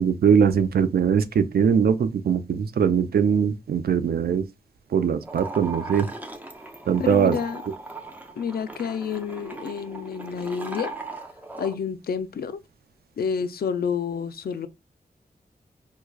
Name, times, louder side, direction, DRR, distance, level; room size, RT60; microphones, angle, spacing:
voice 1, 0.0-4.4 4.9-6.1 6.9-7.4, right 7 dB, 75° right, 0.4 m, -21 dB
sound 1, 5.2-11.7, right 2 dB, 10° right, 0.6 m, -38 dB
voice 2, 7.0-7.6 8.4-10.9 11.6-12.6 13.2-14.7, left 6 dB, 70° left, 0.4 m, -29 dB
4.6 x 2.2 x 2.3 m
wide cardioid pair, 80°, 16 cm